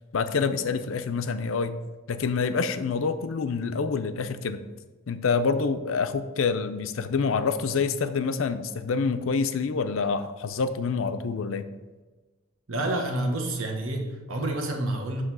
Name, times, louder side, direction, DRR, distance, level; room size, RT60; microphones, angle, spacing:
voice 1, 0.1-1.7 2.1-4.6 5.1-11.7, left 5 dB, 70° left, 10 dB, 0.5 m, -27 dB
voice 2, 12.7-15.2, right 1 dB, 80° right, 2 dB, 1.2 m, -29 dB
7.5 x 3.3 x 6.1 m, 1.3 s
head